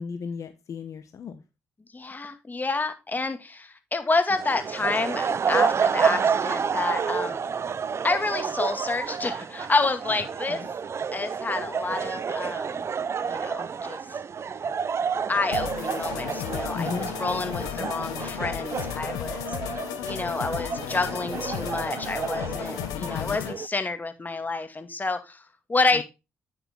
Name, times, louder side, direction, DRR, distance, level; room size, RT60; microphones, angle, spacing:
voice 1, 0.0-1.4 10.5-10.7 16.7-17.1 17.8-17.9 23.0-23.4 25.9-26.0, left 5 dB, 60° left, 8 dB, 1.3 m, -35 dB
voice 2, 1.9-7.4 8.0-10.6 11.1-12.9 13.2-14.0 15.3-25.4 25.7-26.0, left 3 dB, 30° left, 8 dB, 2.2 m, -29 dB
sound 1, 4.3-23.7, right 6 dB, 50° right, 0.6 m, -30 dB
sound 2, 15.5-23.5, left 12 dB, 85° left, 0.8 m, -34 dB
9.6 x 6.8 x 3.7 m, 0.26 s
hypercardioid pair, 50°, 6 cm